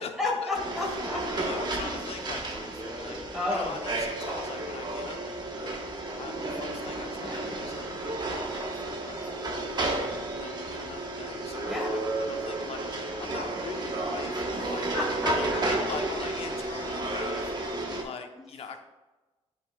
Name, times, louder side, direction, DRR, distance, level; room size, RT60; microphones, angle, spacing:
voice 1, 0.0-1.2 3.3-3.7 7.2-7.5 11.7-11.9 14.5-15.3 18.3-18.4, left 2 dB, 5° right, -1 dB, 2.1 m, -32 dB
sound 1, 0.5-18.0, right 2 dB, 40° right, 1.1 m, -32 dB
voice 2, 1.3-9.9 10.3-14.9 15.2-17.5 18.0-18.8, left 5 dB, 60° left, 6 dB, 0.8 m, -42 dB
9.6 x 5.0 x 2.3 m, 1.1 s
cardioid pair, 95°, 11 cm